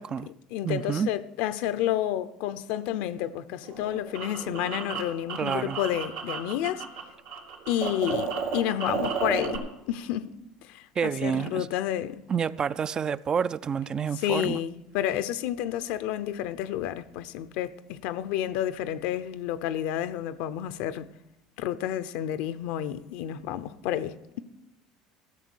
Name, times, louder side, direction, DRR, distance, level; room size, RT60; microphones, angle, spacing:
voice 1, 0.0-6.8 7.7-9.6 9.9-10.3 10.7-12.2 14.2-21.1 21.6-24.4, left 12 dB, 70° left, 0.7 m, -30 dB
voice 2, 0.6-1.1 5.4-5.8 11.0-11.7 12.3-14.6, right 7 dB, 35° right, 0.4 m, -28 dB
sound 1, 3.6-7.0 7.3-9.6, right 6 dB, 85° right, 3.1 m, -32 dB
15.0 x 6.8 x 6.4 m
supercardioid pair, 95°, 2 cm